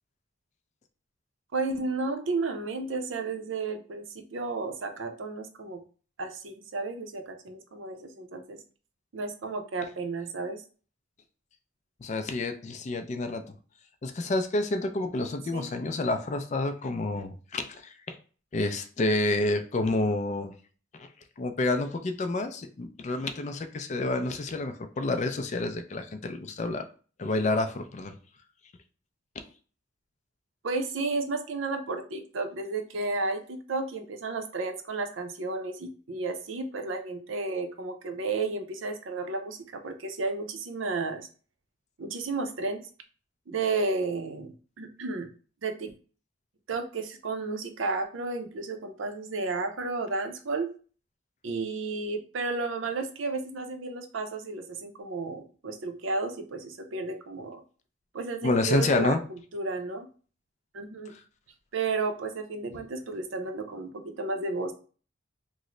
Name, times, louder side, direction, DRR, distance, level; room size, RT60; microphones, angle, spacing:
voice 1, 1.5-5.8 6.2-8.6 9.1-10.6 15.5-15.7 30.6-41.3 42.0-42.8 43.5-45.3 45.6-45.9 46.7-50.7 51.4-57.6 58.1-60.1 60.7-61.1 61.7-64.7, right 3 dB, 80° right, 6 dB, 0.6 m, -32 dB
voice 2, 12.0-13.4 14.0-18.1 18.5-20.5 21.0-21.1 21.4-26.8 27.2-28.1 58.4-59.2, left 2 dB, 35° left, 7 dB, 0.4 m, -29 dB
3.1 x 2.0 x 3.7 m, 0.39 s
head